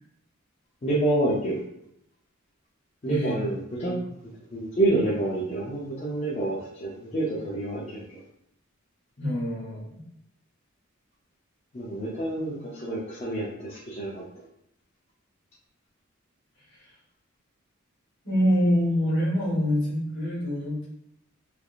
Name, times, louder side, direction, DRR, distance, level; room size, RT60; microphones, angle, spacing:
voice 1, 0.8-1.6 3.0-3.9 4.5-8.0 11.7-14.2, right 2 dB, 30° left, -7 dB, 0.5 m, -28 dB
voice 2, 9.2-9.9 18.2-20.9, equal, 60° left, -5 dB, 1.4 m, -25 dB
3.3 x 2.4 x 2.3 m, 0.77 s
head